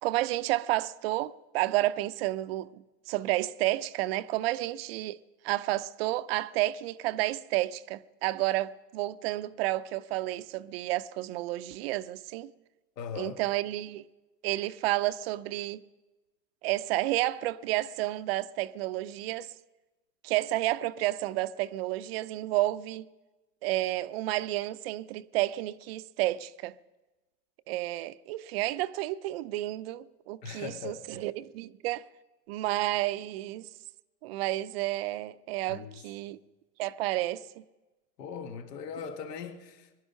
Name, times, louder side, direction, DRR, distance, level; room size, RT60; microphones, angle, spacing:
voice 1, 0.0-5.2 5.4-12.5 13.2-14.0 14.4-15.8 16.6-19.5 20.2-23.1 23.6-26.7 27.7-32.1 32.5-33.7 34.2-36.4 36.8-37.6, right 16 dB, 40° right, 0.5 m, -31 dB
voice 2, 13.0-13.4 30.4-31.3 35.7-36.0 38.2-40.0, left 7 dB, 75° left, 1.7 m, -40 dB
22.0 x 11.0 x 5.6 m
hypercardioid pair, 120°, 49 cm